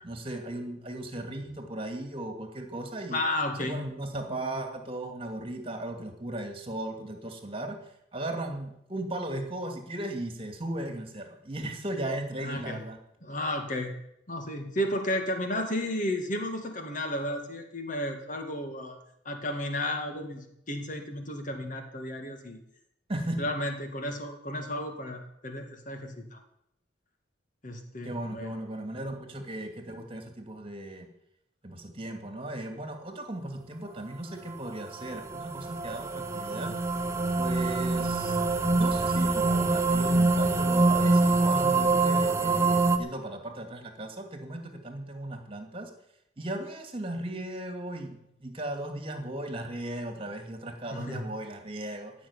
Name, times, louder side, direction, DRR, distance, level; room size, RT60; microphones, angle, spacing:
voice 1, 0.0-3.2 3.6-7.8 8.1-13.0 23.1-23.5 28.0-31.1 31.6-36.8 37.4-38.4 38.7-45.9 46.4-52.1, right 1 dB, 30° right, 5 dB, 2.4 m, -36 dB
voice 2, 3.1-3.9 12.4-12.8 13.2-13.9 14.3-19.0 19.2-22.6 23.4-26.4 27.6-28.5 50.9-51.3, left 1 dB, 40° left, 4 dB, 2.2 m, -33 dB
sound 1, 34.5-43.0, right 3 dB, 15° right, 1.0 m, -25 dB
15.5 x 6.4 x 9.8 m, 0.78 s
head